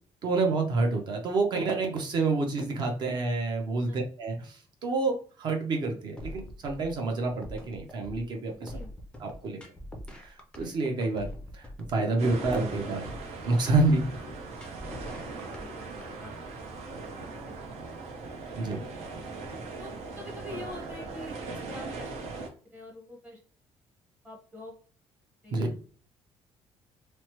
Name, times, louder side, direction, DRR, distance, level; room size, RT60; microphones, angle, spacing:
voice 1, 0.2-8.7 9.2-9.6 10.2-13.1 13.5-14.1 18.6-18.8 25.5-25.7, right 3 dB, 45° right, 3 dB, 0.6 m, -28 dB
sound 1, 6.2-16.1, left 1 dB, 10° left, 0.4 m, -43 dB
sound 2, 12.2-22.5, right 3 dB, 85° right, 0.7 m, -39 dB
voice 2, 14.6-15.0 15.3-15.8 16.2-16.5 17.5-17.6 19.8-22.1 22.4-23.4 24.2-24.7 25.4-25.5, left 1 dB, 15° right, -1 dB, 0.8 m, -45 dB
3.0 x 2.0 x 2.9 m, 0.40 s
cardioid pair, 170°, 11 cm